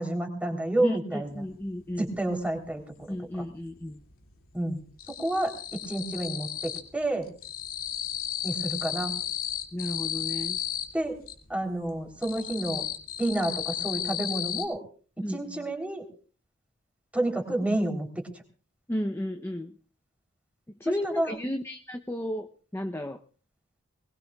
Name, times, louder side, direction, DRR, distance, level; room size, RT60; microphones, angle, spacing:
voice 1, 0.0-1.4 2.0-2.8 3.3-3.4 4.5-4.8 5.1-7.3 8.4-9.1 10.9-11.2 11.5-12.8 13.2-14.8 15.3-16.0 17.1-18.3 21.0-21.4, right 1 dB, 5° right, 3 dB, 3.5 m, -29 dB
voice 2, 0.8-2.1 3.1-4.0 9.7-10.6 15.2-15.6 18.9-19.7 20.8-23.2, left 1 dB, 10° left, 6 dB, 0.7 m, -33 dB
sound 1, 1.4-1.5 1.8-3.1 3.3-4.0 4.3-7.0 7.2-11.4 11.8-14.6, left 10 dB, 70° left, 2.4 m, -34 dB
22.0 x 20.5 x 2.4 m, 0.40 s
head